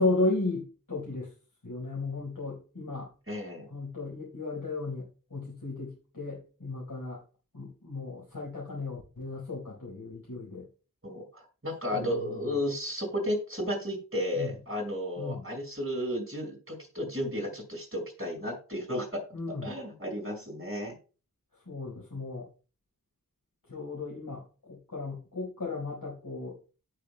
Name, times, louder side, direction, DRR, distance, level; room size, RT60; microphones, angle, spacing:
voice 1, 0.0-1.3 1.6-3.1 3.7-7.2 7.5-10.6 11.9-12.6 14.3-14.6 15.2-15.4 19.3-19.8 21.5-22.5 23.7-26.6, left 2 dB, 75° left, -4 dB, 4.7 m, -34 dB
voice 2, 3.3-3.7 11.0-19.2 19.6-20.9, equal, 40° right, 0 dB, 5.7 m, -33 dB
17.0 x 6.6 x 2.2 m, 0.35 s
wide cardioid pair, 45°, 34 cm